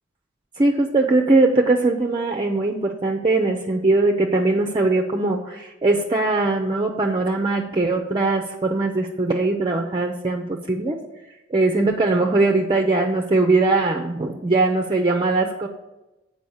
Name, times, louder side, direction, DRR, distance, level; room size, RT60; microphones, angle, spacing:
voice 1, 0.6-11.0 11.5-15.7, right 2 dB, 25° right, 2 dB, 0.6 m, -20 dB
7.8 x 4.8 x 7.0 m, 1.0 s
head